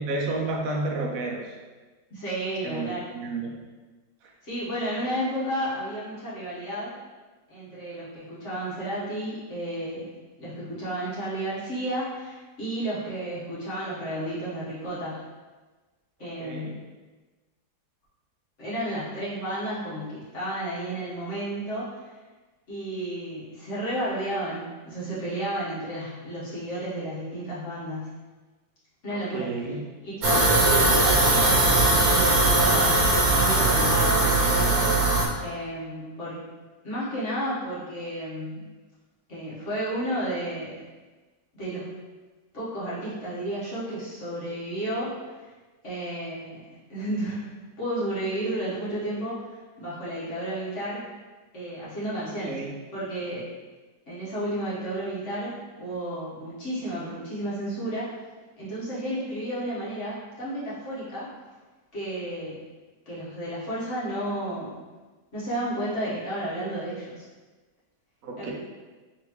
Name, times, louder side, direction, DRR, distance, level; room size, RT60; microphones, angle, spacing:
voice 1, 0.0-1.5 2.6-3.6 4.2-4.3 16.2-16.8 29.1-29.8 52.5-52.7 68.2-68.5, right 2 dB, 65° right, -1 dB, 1.0 m, -31 dB
voice 2, 2.1-3.0 4.4-6.9 7.5-10.1 10.4-15.2 16.2-16.8 18.6-21.9 22.7-28.2 29.0-29.5 30.0-34.9 35.4-36.4 36.8-38.7 39.3-40.8 41.5-41.9 42.5-45.1 45.8-46.6 46.9-47.5 47.8-51.0 51.5-52.5 52.9-53.5 54.1-58.1 58.6-61.3 61.9-62.6 63.1-64.8 65.3-67.2 68.4-68.5, right 1 dB, 45° left, -10 dB, 1.7 m, -32 dB
sound 1, 30.2-35.3, right 2 dB, 90° right, 1.4 m, -20 dB
4.0 x 3.3 x 3.0 m, 1.3 s
omnidirectional pair, 1.8 m